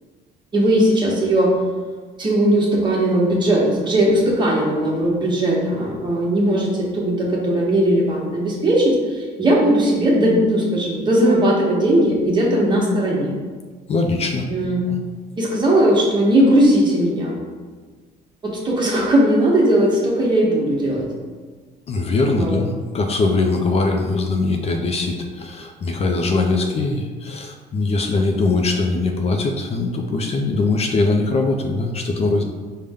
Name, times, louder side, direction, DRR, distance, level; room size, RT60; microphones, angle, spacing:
voice 1, 0.5-1.5 2.2-13.3 14.5-14.8 15.4-17.4 18.4-21.1 22.4-22.6, right 1 dB, 25° right, -3 dB, 1.1 m, -18 dB
voice 2, 13.9-14.5 14.9-15.0 21.9-32.4, left 3 dB, 40° left, 3 dB, 0.4 m, -21 dB
5.1 x 2.1 x 3.5 m, 1.4 s
cardioid pair, 110°, 17 cm